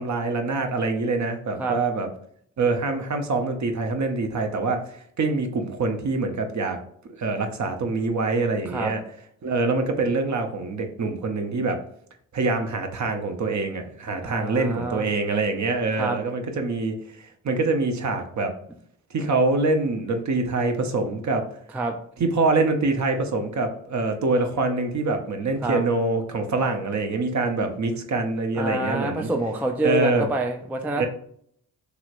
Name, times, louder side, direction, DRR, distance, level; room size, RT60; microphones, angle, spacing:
voice 1, 0.0-2.1 2.6-4.8 5.2-6.8 7.0-9.0 9.4-11.8 12.3-16.9 17.4-18.5 19.1-21.5 22.2-29.3 29.8-30.3 31.0-31.1, right 3 dB, 45° right, 5 dB, 0.7 m, -25 dB
voice 2, 14.2-15.1 16.0-16.2 21.7-22.0 25.6-25.8 28.6-31.1, right 1 dB, 5° right, 4 dB, 0.3 m, -27 dB
3.0 x 3.0 x 2.5 m, 0.64 s
supercardioid pair, 40°, 41 cm